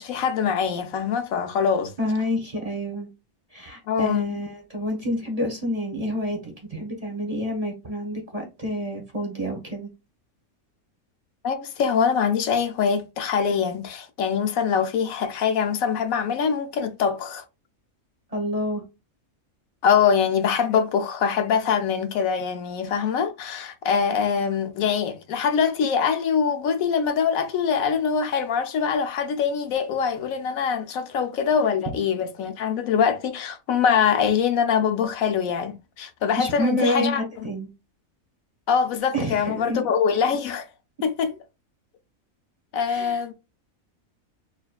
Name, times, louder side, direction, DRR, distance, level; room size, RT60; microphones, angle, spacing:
voice 1, 0.0-1.9 3.9-4.4 11.4-17.4 19.8-37.2 38.7-40.7 41.0-41.3 42.7-43.3, left 7 dB, 75° left, 1.1 m, -23 dB
voice 2, 2.0-3.1 3.5-9.9 18.3-18.8 36.4-37.7 39.1-39.8 42.9-43.2, equal, 30° right, 0.8 m, -28 dB
6.4 x 2.5 x 2.2 m
omnidirectional pair, 1.5 m